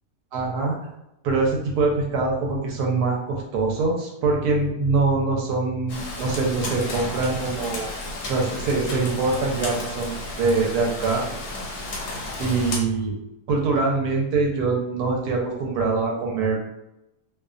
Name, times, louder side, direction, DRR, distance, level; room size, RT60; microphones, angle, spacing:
voice 1, 0.3-0.8 1.2-7.9 8.3-11.3 12.4-13.2 13.5-16.6, right 3 dB, 85° right, -1 dB, 1.1 m, -23 dB
Rain, 5.9-12.8, left 2 dB, 85° left, 1.2 m, -33 dB
2.7 x 2.1 x 2.4 m, 0.89 s
omnidirectional pair, 1.7 m